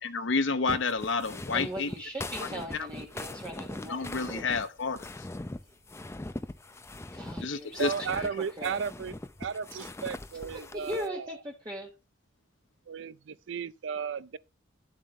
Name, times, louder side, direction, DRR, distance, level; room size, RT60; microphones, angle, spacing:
voice 1, 0.0-1.9 2.4-2.9 3.9-5.2 7.4-8.2, left 4 dB, 70° left, 0.8 m, -30 dB
sound 1, 0.7-11.1, left 2 dB, 15° left, 0.5 m, -41 dB
voice 2, 1.5-4.6 7.1-8.3 8.6-8.8 10.5-11.9, equal, 20° right, 1.3 m, -39 dB
voice 3, 7.8-9.1 9.4-11.4 12.9-14.4, right 6 dB, 65° right, 0.4 m, -34 dB
11.0 x 7.5 x 3.2 m
head